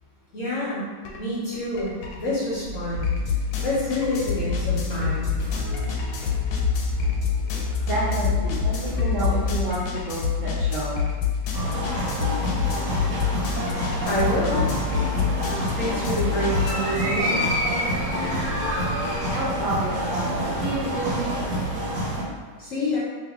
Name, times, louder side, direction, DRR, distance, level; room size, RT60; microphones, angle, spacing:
voice 1, 0.3-0.9 1.2-3.1 3.6-5.3 14.1-14.6 15.8-17.6 22.6-23.0, left 1 dB, 60° left, -7 dB, 0.9 m, -27 dB
sound 1, 1.0-1.2 1.5-16.7, left 7 dB, 85° left, 1.2 m, -27 dB
sound 2, 2.6-9.7, left 2 dB, 45° left, 0.6 m, -30 dB
voice 2, 7.9-11.0 19.3-21.3, right 2 dB, 65° right, -8 dB, 0.8 m, -29 dB
sound 3, 11.5-22.2, equal, 90° right, 1.5 m, -27 dB
2.8 x 2.5 x 3.5 m, 1.5 s
omnidirectional pair, 1.9 m